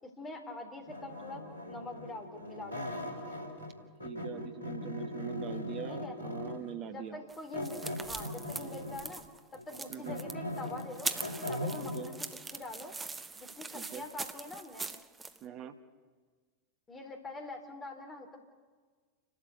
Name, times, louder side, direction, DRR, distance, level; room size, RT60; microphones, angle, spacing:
voice 1, 0.0-2.9 5.9-6.2 6.9-7.8 8.1-9.2 9.7-11.1 11.5-12.9 13.3-14.8 16.9-18.4, left 2 dB, 15° left, 4 dB, 3.9 m, -44 dB
sound 1, 0.9-3.7 4.0-6.7 7.5-9.1 9.6-12.1, left 1 dB, 90° right, 3.4 m, -39 dB
voice 2, 4.0-7.2 9.9-10.2 11.8-12.1 13.7-14.1 15.4-15.7, right 9 dB, 35° right, 8 dB, 1.6 m, -43 dB
sound 2, 7.3-15.4, right 4 dB, 15° right, 1.0 m, -42 dB
29.0 x 12.5 x 8.3 m, 1.5 s
figure-of-eight pair, 90°, 0 cm